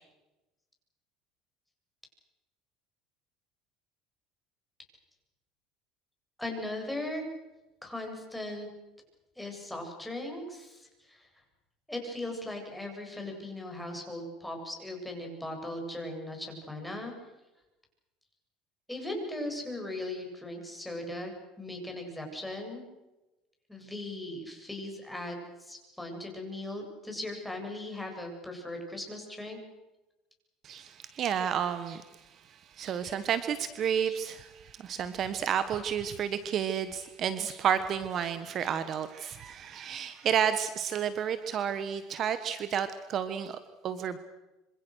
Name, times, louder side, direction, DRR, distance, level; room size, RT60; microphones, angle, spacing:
voice 1, 6.4-7.2 7.8-8.7 9.4-11.3 11.9-17.1 18.9-21.3 21.6-22.8 23.7-29.6, left 1 dB, 5° left, 2 dB, 8.0 m, -38 dB
voice 2, 30.6-44.2, right 8 dB, 45° right, 11 dB, 1.4 m, -31 dB
26.5 x 26.0 x 6.5 m, 1.0 s
supercardioid pair, 110°, 0 cm